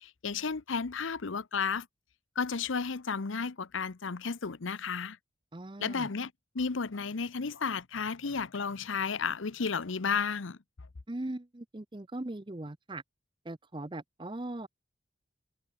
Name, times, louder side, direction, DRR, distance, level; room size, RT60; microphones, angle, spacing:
voice 1, 0.0-1.9 2.4-5.2 5.8-10.6, left 5 dB, 85° left, 0.8 m, -33 dB
voice 2, 5.5-6.1 11.1-13.0 13.4-14.7, right 1 dB, 25° right, 0.7 m, -39 dB
head